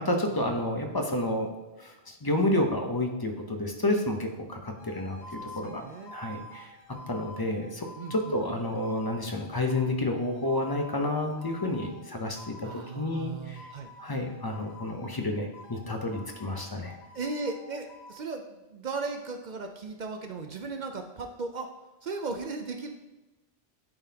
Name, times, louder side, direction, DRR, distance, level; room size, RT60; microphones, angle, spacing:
voice 1, 0.0-1.5 1.8-6.7 7.1-12.5 12.9-13.7 14.0-16.9, left 1 dB, 25° left, 3 dB, 0.6 m, -30 dB
sound 1, 4.8-13.1 13.6-15.3 15.5-18.2, left 2 dB, 80° left, 1.1 m, -48 dB
voice 2, 5.2-6.1 8.0-8.4 12.6-13.9 17.1-21.7 22.0-22.9, right 3 dB, 55° right, 5 dB, 0.5 m, -37 dB
10.5 x 3.9 x 2.8 m, 1.1 s
omnidirectional pair, 1.1 m